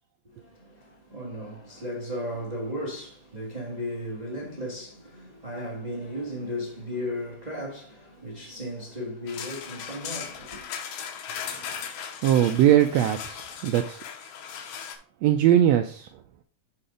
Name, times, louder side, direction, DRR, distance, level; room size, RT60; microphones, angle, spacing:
voice 1, 0.2-10.7, left 1 dB, 40° right, 0.5 m, -35 dB
sound 1, 9.3-15.0, left 8 dB, 85° left, 2.3 m, -38 dB
voice 2, 11.5-11.8 12.2-14.0 15.2-16.1, right 11 dB, 80° right, 1.5 m, -21 dB
6.6 x 4.2 x 4.9 m
omnidirectional pair, 3.5 m